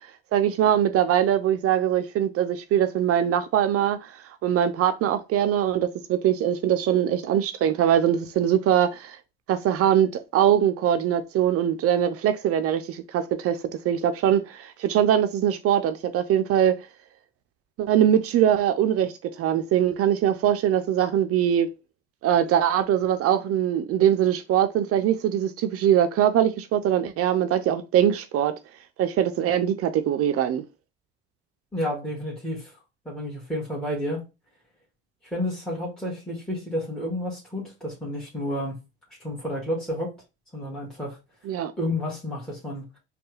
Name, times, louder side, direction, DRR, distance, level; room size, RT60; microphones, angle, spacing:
voice 1, 0.3-9.2 9.5-13.6 13.8-16.8 17.8-19.1 19.4-21.7 22.2-28.5 29.0-30.6 41.4-41.7, right 10 dB, 50° right, 0.5 m, -22 dB
voice 2, 31.7-32.7 33.0-34.2 35.2-38.8 39.2-40.1 40.5-41.2 41.8-43.0, left 1 dB, ahead, 1.7 m, -30 dB
4.3 x 2.4 x 3.2 m
hypercardioid pair, 75°, 31 cm